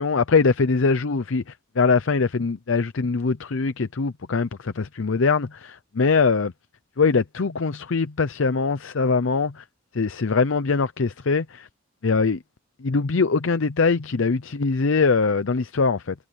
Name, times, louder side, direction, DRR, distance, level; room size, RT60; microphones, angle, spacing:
voice 1, 0.0-6.5 7.0-9.6 9.9-11.7 12.0-12.4 12.8-16.1, left 4 dB, 80° left, 0.7 m, -22 dB
head